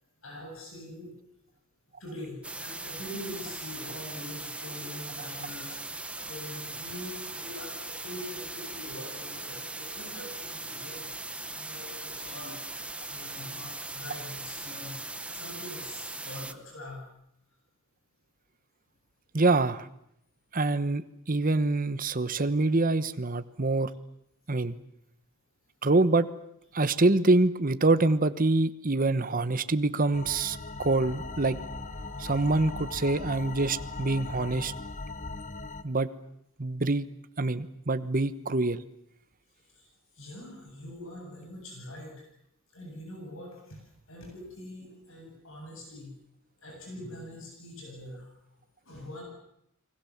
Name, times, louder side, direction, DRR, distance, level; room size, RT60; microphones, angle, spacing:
voice 1, 0.2-1.1 2.0-5.8 6.2-11.1 11.5-12.6 13.1-17.1 32.2-32.4 39.6-42.3 42.7-46.1 46.6-48.3 48.8-49.2, left 1 dB, 65° left, 1 dB, 7.7 m, -44 dB
sound 1, 2.4-16.5, right 2 dB, 5° right, 1.1 m, -39 dB
voice 2, 19.3-19.8 20.5-23.9 24.5-24.7 25.8-26.3 26.7-31.6 32.2-34.7 35.8-36.1 36.6-37.1 37.4-38.8, right 2 dB, 40° right, 13 dB, 1.1 m, -25 dB
sound 2, 30.1-35.8, left 3 dB, 35° left, 1.2 m, -39 dB
Wind instrument woodwind instrument, 31.0-35.5, left 1 dB, 80° left, 5.9 m, -53 dB
30.0 x 21.5 x 7.3 m, 0.75 s
head